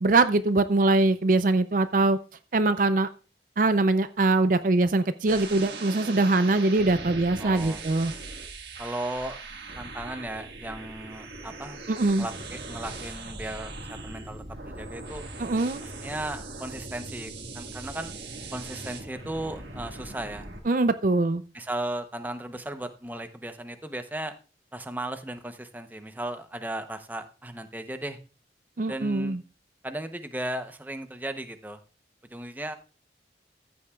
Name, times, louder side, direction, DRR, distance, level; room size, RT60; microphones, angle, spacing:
voice 1, 0.0-2.2 2.5-3.1 3.6-8.1 11.9-12.3 15.4-15.8 20.7-21.4 28.8-29.4, right 2 dB, 50° right, 11 dB, 0.5 m, -22 dB
sound 1, 5.3-20.6, right 3 dB, 70° right, 1.7 m, -40 dB
voice 2, 7.4-7.8 8.8-9.4 9.8-11.8 12.2-15.2 15.8-18.1 18.5-20.5 21.5-24.3 24.7-28.2 28.9-29.4 29.8-31.8 32.3-32.7, right 1 dB, 10° right, 8 dB, 0.7 m, -36 dB
14.5 x 8.6 x 2.3 m, 0.35 s
head